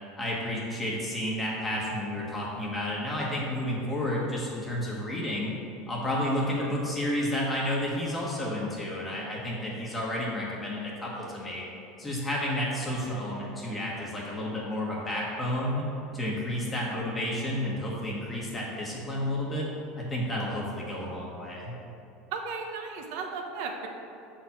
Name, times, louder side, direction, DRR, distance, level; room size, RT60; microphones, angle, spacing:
voice 1, 0.2-5.5 5.9-11.6 12.0-15.9 16.1-19.7 20.0-21.7, left 1 dB, 15° left, -4 dB, 1.3 m, -31 dB
voice 2, 22.3-23.9, right 4 dB, 65° right, 3 dB, 1.0 m, -35 dB
6.8 x 4.5 x 5.9 m, 2.9 s
supercardioid pair, 135°, 0 cm